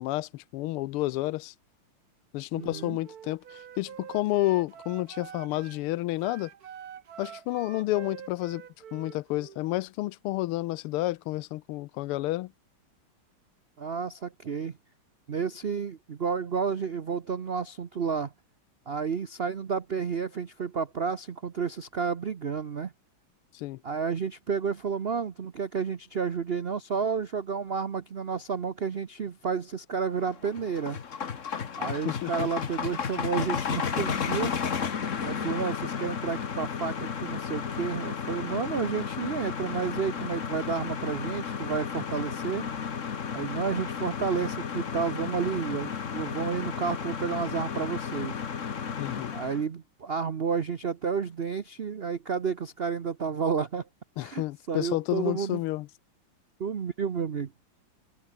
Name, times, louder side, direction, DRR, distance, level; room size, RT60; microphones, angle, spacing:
voice 1, 0.0-1.5 2.3-6.5 7.2-8.6 8.9-12.5 23.5-23.8 32.0-32.7 49.0-49.3 54.2-55.9, left 17 dB, 85° left, 1.5 m, -30 dB
Wind instrument woodwind instrument, 2.5-5.8 6.2-9.6, right 9 dB, 50° right, 1.4 m, -46 dB
voice 2, 2.5-3.0 13.8-14.7 15.3-18.3 18.9-22.9 23.8-31.0 31.8-34.5 35.2-42.7 43.3-48.3 49.3-53.8 54.2-55.6 56.6-57.5, right 6 dB, 70° right, 0.5 m, -31 dB
sound 1, 30.2-49.6, left 6 dB, 40° left, 1.5 m, -33 dB
open air
omnidirectional pair, 2.4 m